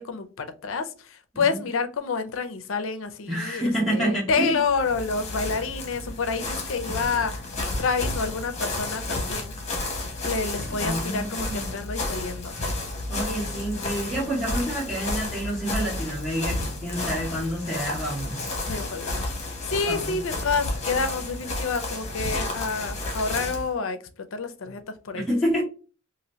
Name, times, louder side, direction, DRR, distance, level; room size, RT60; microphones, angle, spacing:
voice 1, 0.0-7.3 7.8-9.5 10.2-12.5 18.7-24.0 24.3-25.3, left 4 dB, 70° left, 0.5 m, -28 dB
voice 2, 3.3-4.5 10.7-11.7 13.1-18.5 19.8-20.2 25.1-25.6, equal, ahead, 0.7 m, -28 dB
sound 1, 4.6-23.7, left 2 dB, 30° left, 1.0 m, -31 dB
2.8 x 2.5 x 3.0 m
head